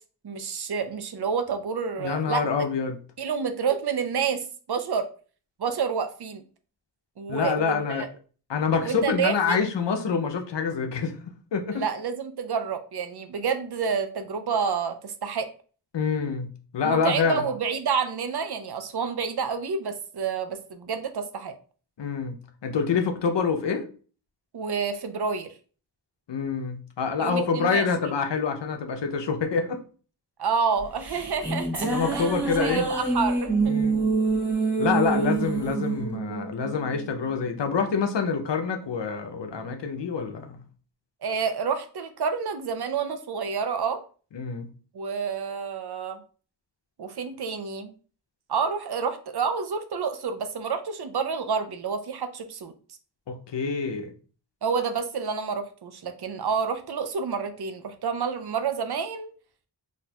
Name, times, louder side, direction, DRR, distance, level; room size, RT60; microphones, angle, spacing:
voice 1, 0.2-2.4 3.2-5.1 5.6-6.4 7.2-8.1 8.8-9.6 11.7-15.5 16.8-21.5 24.5-25.5 27.2-27.9 30.4-32.3 32.6-33.7 41.2-44.0 44.9-46.2 47.0-47.9 48.5-52.7 54.6-59.3, right 6 dB, 65° right, 8 dB, 0.6 m, -29 dB
voice 2, 2.0-3.0 7.3-8.1 8.5-11.2 11.5-11.8 15.9-17.5 22.0-23.8 26.3-29.8 31.8-32.8 33.7-34.0 34.8-40.6 44.3-44.7 53.3-54.1, left 5 dB, 85° left, 6 dB, 0.6 m, -26 dB
sound 1, 30.8-37.3, right 3 dB, 5° right, 0.9 m, -26 dB
4.1 x 2.6 x 2.2 m, 0.39 s
wide cardioid pair, 65°, 42 cm